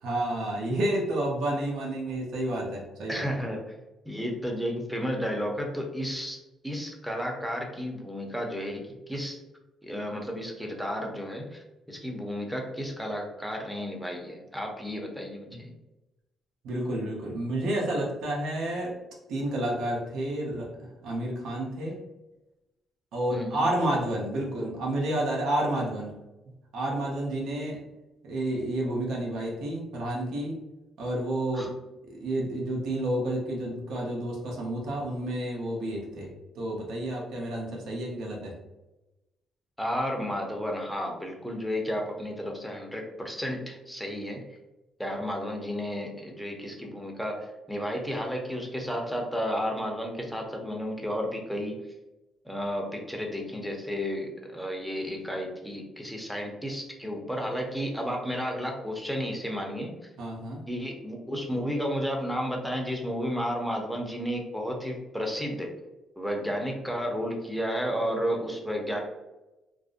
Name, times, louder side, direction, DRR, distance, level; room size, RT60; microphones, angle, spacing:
voice 1, 0.0-3.2 15.5-15.6 16.6-18.9 19.3-22.0 23.1-26.1 26.7-27.8 28.2-30.6 31.0-31.7 32.0-38.5 60.2-60.6, right 1 dB, 80° right, -2 dB, 0.6 m, -30 dB
voice 2, 3.1-3.6 4.1-6.4 6.6-9.4 9.8-15.7 23.3-23.7 31.5-31.7 39.8-44.4 45.0-51.8 52.4-59.9 60.7-65.7 66.2-69.0, equal, ahead, 0 dB, 0.6 m, -32 dB
2.5 x 2.0 x 2.4 m, 1.0 s
cardioid pair, 90°, 0 cm